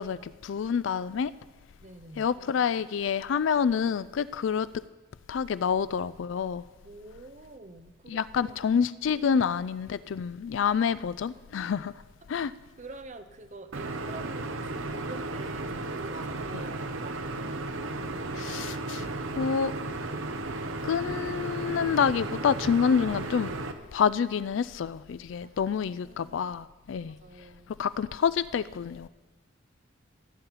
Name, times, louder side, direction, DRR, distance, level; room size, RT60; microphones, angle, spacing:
voice 1, 0.0-1.3 2.2-4.7 5.3-6.6 8.1-11.9 12.3-12.5 18.3-19.7 20.8-23.5 23.9-27.2 27.8-29.1, left 7 dB, 65° left, 0.3 m, -28 dB
voice 2, 1.8-2.3 6.8-8.6 9.1-9.3 12.8-17.2 25.4-25.8 26.0-26.5 27.1-27.8, right 3 dB, 35° right, 0.7 m, -46 dB
sound 1, 13.7-23.7, right 2 dB, 75° right, 0.8 m, -34 dB
17.5 x 8.4 x 4.1 m
head